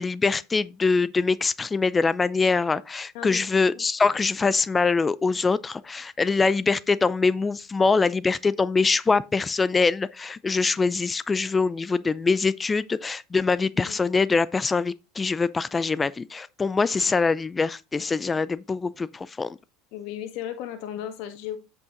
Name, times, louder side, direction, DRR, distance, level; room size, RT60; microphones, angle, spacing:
voice 1, 0.0-19.6, left 4 dB, 20° left, 0.4 m, -24 dB
voice 2, 3.1-3.9 13.9-14.0 19.9-21.6, left 11 dB, 65° left, 1.7 m, -35 dB
8.1 x 5.4 x 3.9 m
supercardioid pair, 105°, 0 cm